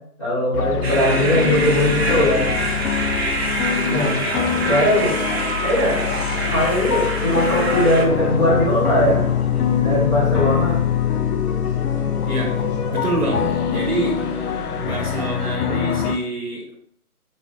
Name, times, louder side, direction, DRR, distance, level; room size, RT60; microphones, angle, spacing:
voice 1, 0.2-2.5 3.9-4.1 4.7-5.2 5.6-6.0 6.5-9.3 9.8-10.8, equal, 20° left, -10 dB, 1.5 m, -19 dB
sound 1, 0.5-16.2, left 8 dB, 80° left, 0.6 m, -23 dB
sound 2, 0.8-8.0, right 2 dB, 45° right, 0.6 m, -26 dB
voice 2, 1.0-1.7 3.8-4.1 12.3-12.5 12.9-14.1 14.8-16.8, right 2 dB, 70° right, -1 dB, 1.7 m, -27 dB
sound 3, 4.1-15.6, equal, 45° left, 0.9 m, -35 dB
4.8 x 3.2 x 2.5 m, 0.65 s
hypercardioid pair, 170°, 45 cm